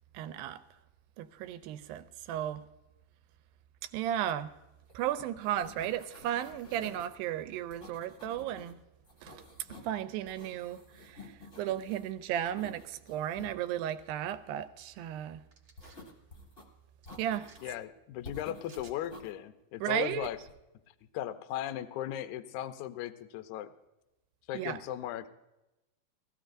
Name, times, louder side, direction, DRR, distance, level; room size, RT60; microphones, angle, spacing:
voice 1, 0.1-0.6 1.2-2.6 3.8-4.5 4.9-8.8 9.2-9.4 9.8-15.4 17.2-17.6 19.8-20.3 24.5-24.8, right 11 dB, 85° right, 2.3 m, -35 dB
sound 1, 4.9-5.1 5.3-7.1 7.7-8.7 9.0-10.0 10.3-12.1 12.5-13.5 15.8-16.6 17.1-17.8 18.2-19.3 20.1-20.5, left 2 dB, 40° left, 0.8 m, -51 dB
sound 2, 15.5-16.0 17.0-17.6 18.6-19.0, right 5 dB, 50° right, 1.9 m, -58 dB
voice 2, 17.6-20.4 21.0-23.7 24.5-25.3, left 12 dB, 85° left, 1.7 m, -37 dB
19.0 x 14.0 x 2.6 m
omnidirectional pair, 4.2 m